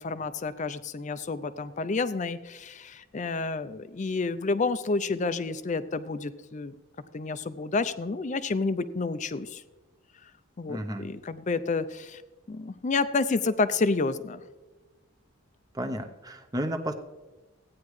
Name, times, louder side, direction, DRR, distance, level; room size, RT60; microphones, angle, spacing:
voice 1, 0.0-6.7 7.1-9.6 10.6-12.2 12.5-14.4, left 3 dB, 35° left, 14 dB, 0.4 m, -29 dB
voice 2, 10.7-11.1 15.7-16.9, right 1 dB, 20° right, 6 dB, 0.7 m, -32 dB
15.5 x 9.5 x 3.2 m, 1.2 s
head